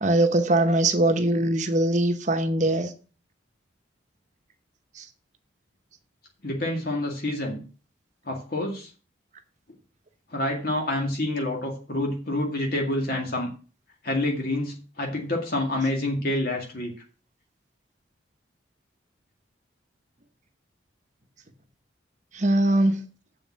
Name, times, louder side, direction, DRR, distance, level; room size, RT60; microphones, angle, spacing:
voice 1, 0.0-2.9 5.0-5.1 22.3-23.0, right 1 dB, 40° right, 1.0 m, -22 dB
voice 2, 6.4-7.6 8.3-8.9 10.3-13.5 14.0-16.9, left 1 dB, 50° left, 2.1 m, -27 dB
7.8 x 5.4 x 7.4 m
head